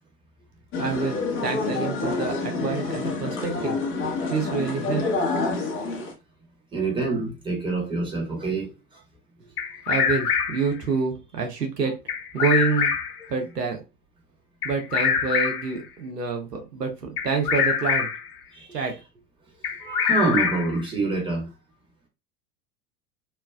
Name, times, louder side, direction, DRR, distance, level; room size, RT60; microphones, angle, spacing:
sound 1, 0.7-6.1, left 3 dB, 25° left, 0.9 m, -28 dB
voice 1, 0.8-3.8 4.3-5.1 9.9-11.9 12.3-12.9 13.3-13.8 14.6-18.1 18.7-18.9, right 5 dB, 90° right, 0.8 m, -27 dB
voice 2, 6.7-9.0 18.5-19.0 19.8-21.5, right 3 dB, 10° right, 1.4 m, -27 dB
Bird vocalization bird call bird song, 9.6-10.7 12.1-13.2 14.6-15.8 17.2-18.3 19.6-20.8, left 7 dB, 70° left, 0.7 m, -24 dB
3.1 x 2.4 x 2.3 m
figure-of-eight pair, 85°, 47 cm